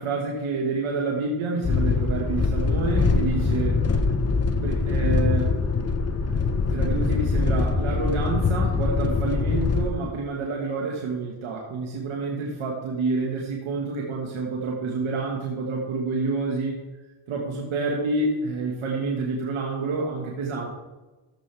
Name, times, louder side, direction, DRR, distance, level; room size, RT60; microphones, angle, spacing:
voice 1, 0.0-3.8 4.6-5.5 6.3-16.8 17.3-20.7, right 3 dB, 75° right, -1 dB, 1.8 m, -28 dB
sound 1, 1.6-9.9, left 4 dB, 30° left, 1.2 m, -23 dB
15.0 x 7.7 x 3.5 m, 1.2 s
supercardioid pair, 60°, 49 cm